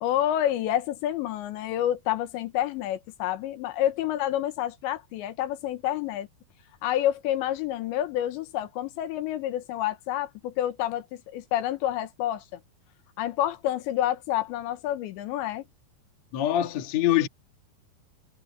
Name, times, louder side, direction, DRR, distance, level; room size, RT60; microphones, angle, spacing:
voice 1, 0.0-6.3 6.8-12.6 13.2-15.6, left 12 dB, 80° left, 3.3 m, -28 dB
voice 2, 16.3-17.3, left 12 dB, 50° left, 2.2 m, -24 dB
omnidirectional pair, 5.3 m